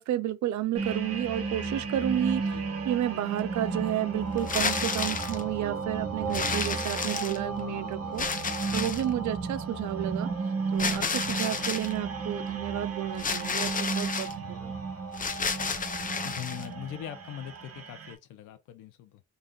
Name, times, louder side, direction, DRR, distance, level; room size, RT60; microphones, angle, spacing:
voice 1, 0.0-10.3 10.7-14.7, right 12 dB, 70° right, 0.5 m, -31 dB
sound 1, 0.8-18.1, right 4 dB, 50° right, 1.3 m, -34 dB
sound 2, 4.4-5.4 6.3-7.6 8.2-9.1 10.8-11.9 13.2-14.3 15.1-16.7, left 5 dB, 25° left, 0.7 m, -31 dB
voice 2, 16.2-19.2, left 11 dB, 85° left, 0.7 m, -41 dB
3.9 x 2.3 x 3.8 m
cardioid pair, 90°, 30 cm